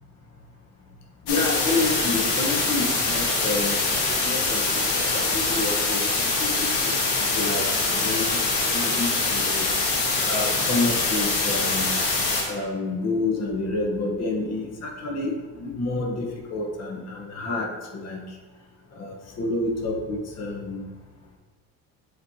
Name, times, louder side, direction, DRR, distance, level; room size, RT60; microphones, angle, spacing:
sound 1, 1.3-12.4, left 3 dB, 90° left, 1.5 m, -24 dB
voice 1, 1.3-3.8 4.1-6.9 7.3-8.4 8.7-9.7 10.3-11.9 12.5-18.2 18.9-20.8, left 2 dB, 50° left, 0 dB, 1.2 m, -29 dB
7.1 x 4.6 x 2.8 m, 1.3 s
cardioid pair, 110°, 32 cm